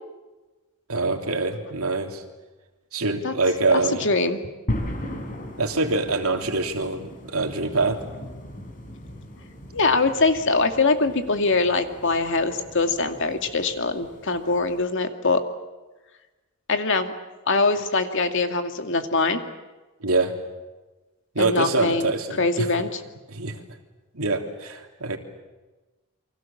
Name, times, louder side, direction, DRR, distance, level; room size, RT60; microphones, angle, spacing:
voice 1, 0.9-2.2 2.9-4.1 5.6-8.1 20.0-20.3 21.3-22.7 23.3-23.6 24.1-25.2, right 3 dB, 80° right, 4 dB, 3.2 m, -25 dB
voice 2, 3.7-4.4 9.7-15.4 16.7-17.1 17.5-19.4 21.4-22.1 22.4-23.0, left 3 dB, 60° left, 6 dB, 2.3 m, -23 dB
sound 1, 4.7-14.8, left 1 dB, 40° left, 4.3 m, -37 dB
29.5 x 24.5 x 7.3 m, 1.2 s
head